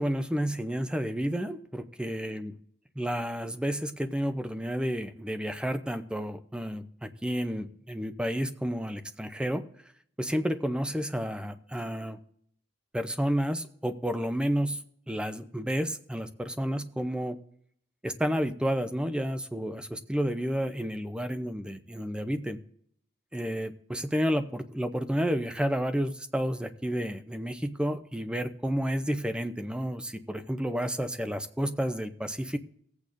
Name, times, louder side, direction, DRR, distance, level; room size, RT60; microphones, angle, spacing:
voice 1, 0.0-2.5 3.0-9.6 10.2-12.2 12.9-14.8 15.1-17.4 18.0-22.6 23.3-32.6, equal, 5° right, 9 dB, 0.5 m, -31 dB
18.5 x 8.4 x 2.6 m, 0.66 s
head